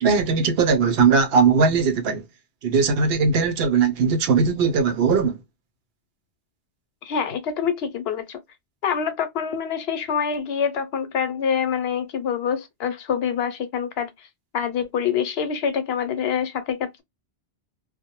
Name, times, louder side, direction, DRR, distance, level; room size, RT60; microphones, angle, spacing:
voice 1, 0.0-2.2 2.6-5.4, right 5 dB, 75° right, 0.8 m, -19 dB
voice 2, 7.0-8.4 8.8-14.1 14.5-17.0, left 7 dB, 75° left, 0.9 m, -26 dB
2.2 x 2.0 x 2.8 m
omnidirectional pair, 1.0 m